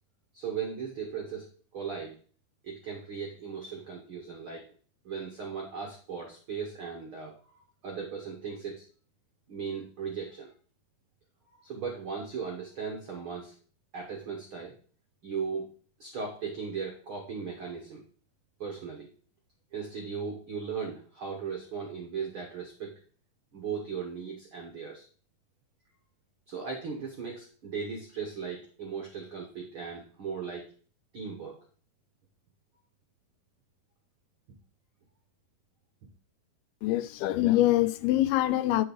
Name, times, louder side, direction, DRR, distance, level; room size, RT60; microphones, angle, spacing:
voice 1, 0.3-2.2 2.6-4.7 5.0-8.9 9.5-10.5 11.5-13.5 13.9-14.7 15.2-15.7 16.0-18.0 18.6-19.1 19.7-23.0 23.5-25.0 26.5-30.7 31.1-31.6, right 6 dB, 75° right, 1.2 m, -37 dB
voice 2, 36.8-38.9, left 15 dB, 85° left, 2.5 m, -24 dB
9.4 x 5.4 x 4.0 m
omnidirectional pair, 4.4 m